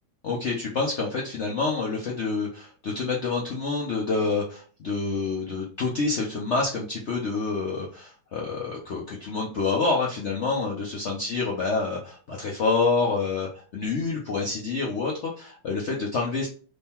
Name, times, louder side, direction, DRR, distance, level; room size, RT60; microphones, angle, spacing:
voice 1, 0.2-16.5, left 4 dB, 75° left, -2 dB, 0.6 m, -27 dB
3.7 x 3.4 x 4.2 m, 0.42 s
omnidirectional pair, 2.2 m